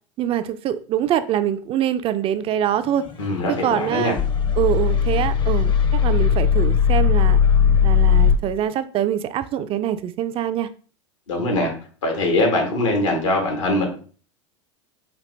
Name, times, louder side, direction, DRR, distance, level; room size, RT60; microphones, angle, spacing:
voice 1, 0.2-3.0 3.6-4.2 4.6-7.4 7.8-10.7, right 10 dB, 35° right, 0.4 m, -24 dB
sound 1, 3.1-8.4, left 7 dB, 30° left, 0.6 m, -18 dB
voice 2, 3.2-4.2 11.3-11.7 12.0-13.9, left 2 dB, 80° left, 1.5 m, -22 dB
5.1 x 2.7 x 3.1 m
hypercardioid pair, 90°, 16 cm